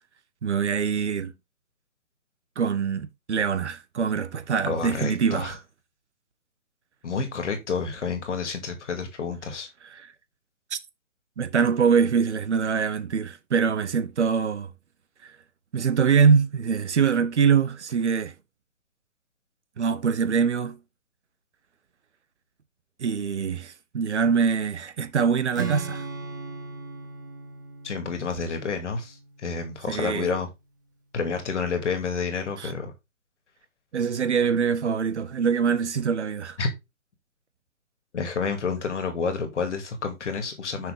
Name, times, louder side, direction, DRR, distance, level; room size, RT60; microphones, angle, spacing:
voice 1, 0.4-1.3 2.6-5.6 9.9-10.1 10.7-10.8 11.4-14.7 15.2-15.3 15.7-18.3 19.8-20.8 23.0-26.0 29.9-30.3 32.6-32.7 33.9-36.6, right 6 dB, 50° right, 0.9 m, -24 dB
voice 2, 4.6-5.5 7.0-9.7 27.8-30.5 31.1-32.9 36.6-36.7 38.1-40.9, left 5 dB, 55° left, 2.3 m, -29 dB
Strum, 25.5-29.7, right 5 dB, 15° right, 0.6 m, -37 dB
5.9 x 5.9 x 3.7 m
figure-of-eight pair, 145°, 43 cm